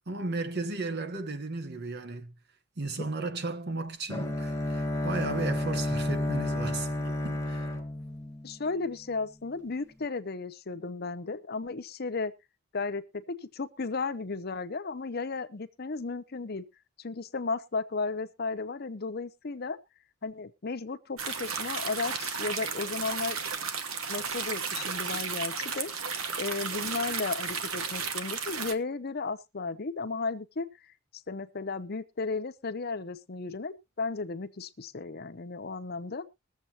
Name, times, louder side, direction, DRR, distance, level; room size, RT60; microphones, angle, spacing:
voice 1, 0.1-2.3 2.8-7.7, right 3 dB, 50° right, 1.0 m, -35 dB
Bowed string instrument, 4.1-9.0, left 1 dB, 15° left, 1.2 m, -31 dB
voice 2, 8.4-12.3 12.7-16.6 17.0-19.8 20.2-23.4 24.1-25.9 26.3-30.7 31.3-36.2, left 4 dB, 50° left, 0.7 m, -34 dB
sound 1, 21.2-28.7, right 5 dB, 75° right, 1.1 m, -34 dB
21.5 x 7.3 x 2.8 m
head